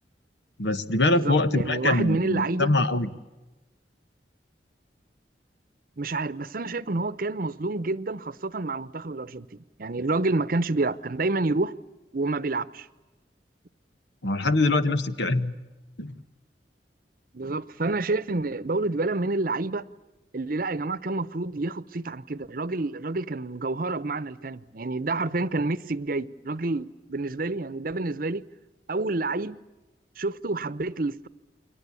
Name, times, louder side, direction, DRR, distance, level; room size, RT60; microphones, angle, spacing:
voice 1, 0.6-3.1 14.2-15.5 16.0-16.1, left 2 dB, 85° left, 1.4 m, -23 dB
voice 2, 1.1-2.7 6.0-11.7 12.1-12.9 17.3-19.9 20.3-28.4 28.9-29.6 30.2-31.3, right 2 dB, 55° right, 0.8 m, -28 dB
29.5 x 22.5 x 8.4 m
head